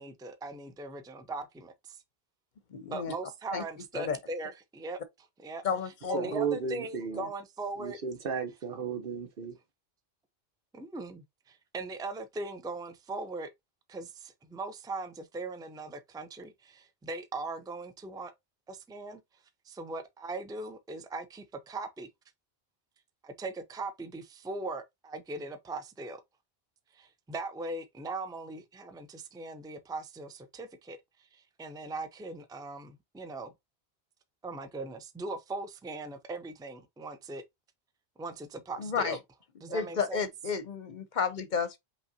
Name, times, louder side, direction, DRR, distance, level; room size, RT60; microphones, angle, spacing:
voice 1, 0.0-2.0 2.9-8.0 10.7-13.5 13.9-18.3 18.7-22.1 23.2-26.2 26.9-33.5 34.4-37.4 38.2-39.2 39.6-40.2, right 3 dB, 5° right, 0.4 m, -40 dB
voice 2, 2.7-3.1 3.5-3.6 3.9-4.2 5.6-6.3 7.1-7.3 38.8-39.2 39.7-41.8, left 6 dB, 55° left, 0.7 m, -32 dB
voice 3, 6.1-7.2 7.8-9.6, right 6 dB, 60° right, 1.1 m, -34 dB
5.4 x 3.1 x 2.7 m
omnidirectional pair, 1.0 m